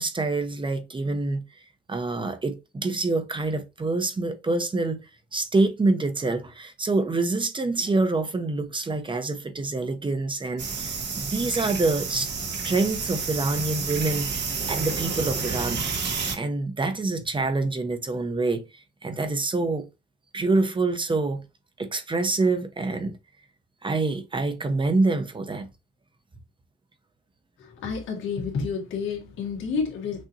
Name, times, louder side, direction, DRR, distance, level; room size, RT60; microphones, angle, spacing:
voice 1, 0.0-1.4 1.9-5.0 5.3-12.3 12.6-16.1 16.3-19.9 20.3-21.4 21.8-23.2 23.8-25.7, right 3 dB, 25° right, 0.8 m, -26 dB
sound 1, 10.6-16.3, right 5 dB, 60° right, 1.7 m, -30 dB
voice 2, 27.6-30.2, left 5 dB, 80° left, 1.9 m, -30 dB
6.2 x 2.7 x 2.9 m
cardioid pair, 90°, 20 cm